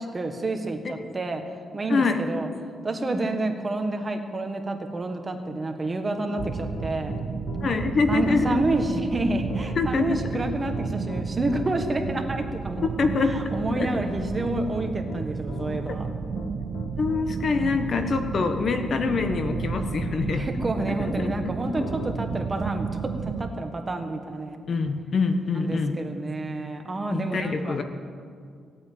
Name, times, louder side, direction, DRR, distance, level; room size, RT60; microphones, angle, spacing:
voice 1, 0.0-1.4 1.7-2.5 2.8-7.2 8.1-12.9 13.2-16.1 20.3-22.9 23.2-24.6 25.5-27.8, right 2 dB, 25° right, 5 dB, 1.6 m, -29 dB
voice 2, 1.9-2.2 7.6-8.6 9.8-10.2 13.0-14.0 15.9-16.0 17.0-20.4 21.0-21.5 24.7-26.0 27.1-27.8, left 4 dB, 50° left, 7 dB, 1.2 m, -25 dB
Piano, 6.1-21.3 21.7-22.1, left 5 dB, 85° left, 1.2 m, -42 dB
sound 1, 6.4-23.5, right 5 dB, 50° right, 0.6 m, -32 dB
17.0 x 8.8 x 8.8 m, 2.2 s
cardioid pair, 105°, 0 cm